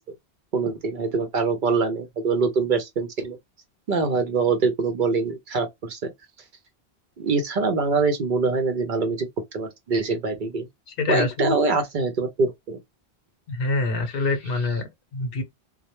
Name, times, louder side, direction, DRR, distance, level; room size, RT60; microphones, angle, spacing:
voice 1, 0.5-3.4 3.9-6.1 7.2-9.3 9.5-10.7 11.1-12.8, right 4 dB, 60° right, 0.6 m, -24 dB
voice 2, 10.9-11.6 13.5-15.4, left 3 dB, 65° left, 0.9 m, -26 dB
2.1 x 2.0 x 2.8 m
omnidirectional pair, 1.1 m